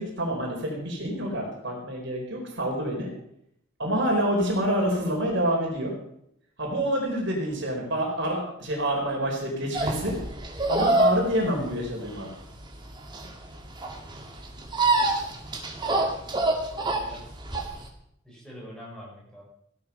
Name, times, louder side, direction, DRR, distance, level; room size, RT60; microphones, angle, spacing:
voice 1, 0.0-3.1 3.8-5.9 6.6-10.2 10.7-12.3, equal, 55° right, 0 dB, 4.3 m, -27 dB
sound 1, 9.7-17.9, right 2 dB, 20° right, 2.0 m, -26 dB
voice 2, 16.7-17.3 18.2-19.4, equal, 5° left, -4 dB, 5.4 m, -44 dB
16.0 x 12.5 x 5.5 m, 0.73 s
head